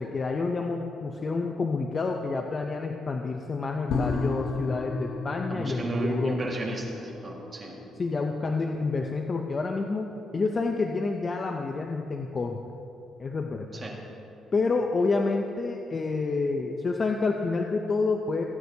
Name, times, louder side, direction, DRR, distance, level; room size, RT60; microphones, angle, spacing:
voice 1, 0.0-6.4 8.0-12.6 13.2-13.8 14.5-18.5, left 3 dB, 30° left, 3 dB, 0.5 m, -28 dB
sound 1, 3.9-11.1 11.4-11.5, left 4 dB, 70° left, 0.9 m, -35 dB
voice 2, 5.5-7.8 13.8-14.0, right 2 dB, 30° right, -2 dB, 1.8 m, -33 dB
17.0 x 9.4 x 2.8 m, 2.9 s
cardioid pair, 135°, 0 cm